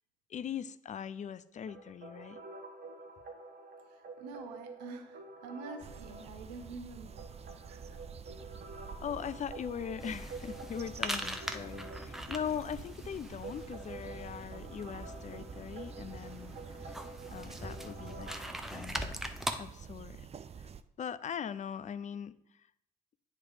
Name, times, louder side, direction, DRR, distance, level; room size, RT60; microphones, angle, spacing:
voice 1, 0.3-2.4 9.0-17.0 17.3-18.3 18.7-19.2 19.6-20.3 20.6-20.7 21.0-22.7, left 8 dB, 35° left, 16 dB, 0.4 m, -41 dB
sound 1, 1.7-18.5, right 3 dB, 50° right, 1.3 m, -49 dB
voice 2, 3.8-8.0, right 4 dB, 80° right, 7 dB, 0.8 m, -47 dB
sound 2, 5.8-20.8, right 7 dB, 30° right, 0.5 m, -49 dB
sound 3, 10.0-19.5, equal, ahead, 0.7 m, -42 dB
9.4 x 3.2 x 4.9 m, 0.73 s
hypercardioid pair, 45°, 21 cm